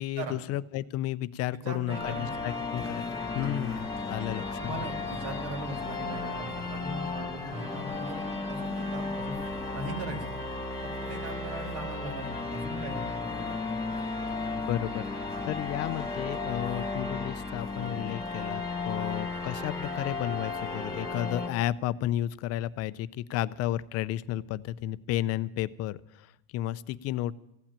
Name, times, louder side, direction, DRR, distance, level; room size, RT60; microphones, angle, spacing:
voice 1, 0.0-3.1 3.3-4.7 14.7-15.0 15.4-27.3, left 13 dB, 40° left, 16 dB, 0.5 m, -32 dB
voice 2, 1.6-2.3 3.4-3.5 4.2-4.3 4.6-9.4 9.7-10.3 11.0-13.1, right 2 dB, 60° right, 4 dB, 3.4 m, -39 dB
sound 1, 1.9-21.5, left 3 dB, 10° left, 2.0 m, -34 dB
16.0 x 8.8 x 8.8 m, 0.83 s
cardioid pair, 150°, 37 cm